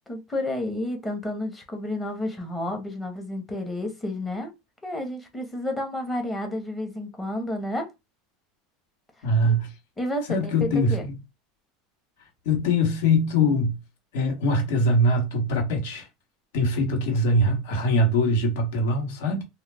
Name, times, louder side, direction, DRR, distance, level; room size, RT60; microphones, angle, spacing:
voice 1, 0.1-4.5 4.8-7.9 9.5-9.6 10.0-11.0, left 1 dB, 10° left, 0.8 m, -31 dB
voice 2, 9.2-9.7 10.3-11.1 12.4-13.7 14.1-16.1 16.5-19.4, left 1 dB, 75° left, 1.0 m, -22 dB
2.2 x 2.1 x 3.3 m
supercardioid pair, 140°, 0 cm